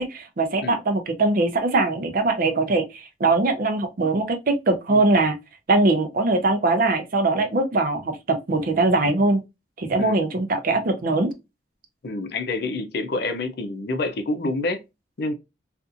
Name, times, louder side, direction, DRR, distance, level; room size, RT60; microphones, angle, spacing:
voice 1, 0.0-5.3 5.7-9.4 9.8-11.3, right 2 dB, 50° right, 0.5 m, -21 dB
voice 2, 12.0-14.8 15.2-15.3, left 2 dB, 60° left, 0.5 m, -27 dB
2.6 x 2.4 x 2.5 m
head